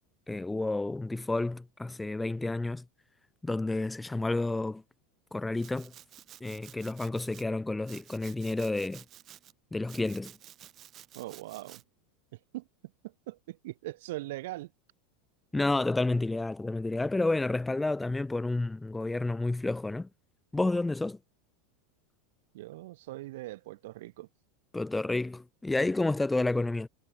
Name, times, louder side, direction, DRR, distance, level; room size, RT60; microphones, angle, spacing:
voice 1, 0.3-2.8 3.4-4.8 5.3-5.9 6.4-9.0 9.7-10.4 15.5-20.1 20.5-21.2 24.7-26.9, left 2 dB, 5° left, 0.4 m, -30 dB
Domestic sounds home sounds, 5.6-7.5 7.9-9.5 9.9-11.8, right 12 dB, 35° right, 2.2 m, -52 dB
voice 2, 11.1-11.8 12.5-12.7 13.0-14.7 22.5-24.3, right 18 dB, 75° right, 1.9 m, -41 dB
supercardioid pair, 135°, 0 cm